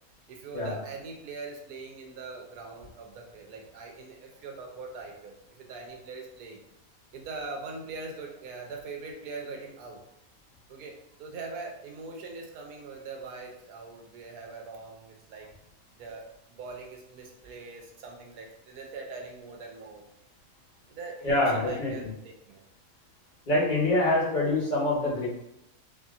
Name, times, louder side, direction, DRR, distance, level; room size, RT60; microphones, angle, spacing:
voice 1, 0.3-6.6 7.1-10.0 10.7-15.5 16.0-16.2 16.6-20.0 20.9-22.6, right 3 dB, 80° right, 1 dB, 1.1 m, -42 dB
voice 2, 21.2-21.9 23.5-25.3, left 2 dB, 35° left, -6 dB, 1.0 m, -25 dB
2.8 x 2.6 x 2.4 m, 0.84 s
omnidirectional pair, 1.6 m